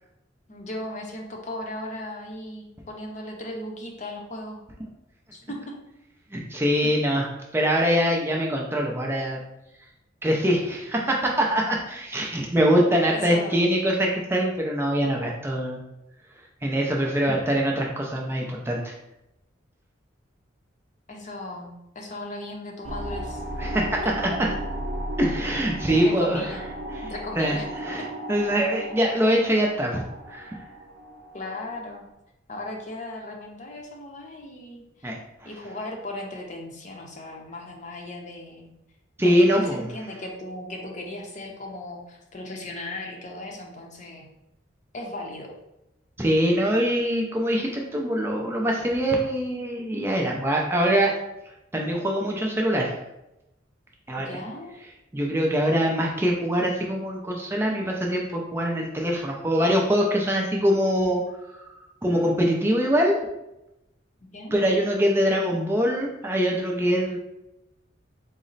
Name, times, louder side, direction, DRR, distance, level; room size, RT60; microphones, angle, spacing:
voice 1, 0.5-4.7 5.3-5.7 13.1-13.7 21.1-23.4 25.9-26.6 27.1-27.7 31.3-32.1 32.5-35.1 35.5-38.7 39.2-44.3 44.9-45.5 54.2-54.8 64.3-64.6, left 1 dB, 40° left, 1 dB, 0.6 m, -37 dB
voice 2, 6.3-7.3 7.5-9.4 10.2-15.8 16.6-18.9 23.6-24.0 25.2-26.4 27.4-30.0 30.3-30.6 35.0-35.2 39.2-39.9 46.2-51.1 51.7-52.9 54.1-54.3 55.1-61.2 61.6-61.7 62.0-63.2 64.5-67.2, equal, 10° right, -1 dB, 0.4 m, -23 dB
sound 1, 22.8-32.1, right 1 dB, 65° right, 0.6 m, -35 dB
4.0 x 2.0 x 3.9 m, 0.88 s
head